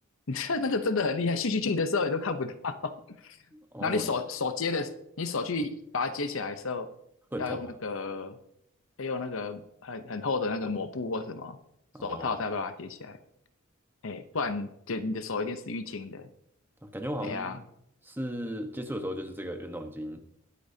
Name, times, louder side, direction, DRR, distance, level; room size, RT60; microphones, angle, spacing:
voice 1, 0.3-2.9 3.2-3.4 3.8-6.9 7.4-8.4 9.0-11.6 12.0-13.2 14.0-16.3 17.2-17.6, left 4 dB, 65° left, 10 dB, 0.8 m, -31 dB
voice 2, 3.5-4.1 7.3-7.6 11.9-12.4 16.8-17.6 18.0-20.2, equal, 10° right, 5 dB, 1.1 m, -36 dB
21.5 x 8.4 x 2.8 m, 0.76 s
head